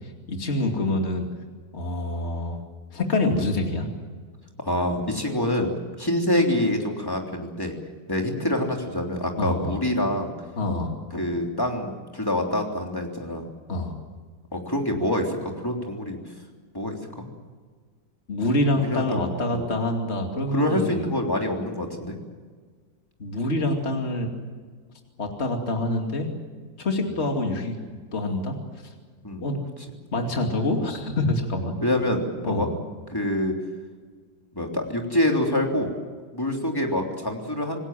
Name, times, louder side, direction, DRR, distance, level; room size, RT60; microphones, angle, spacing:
voice 1, 0.3-1.3 1.7-2.6 2.9-3.9 9.4-9.8 10.6-10.9 13.7-13.9 18.3-21.0 23.2-24.3 25.2-26.3 26.8-27.7 28.1-28.6 29.4-29.6 30.1-31.7 32.4-32.7, left 2 dB, 35° left, 2 dB, 2.8 m, -26 dB
voice 2, 4.6-7.7 8.1-10.3 11.1-13.4 14.5-16.2 16.7-17.3 18.7-19.6 20.5-22.2 27.1-27.2 29.2-29.4 31.8-32.7 33.1-33.5 34.5-35.9 36.3-37.8, left 1 dB, 10° left, 1 dB, 3.3 m, -26 dB
27.5 x 19.0 x 7.6 m, 1.5 s
omnidirectional pair, 2.0 m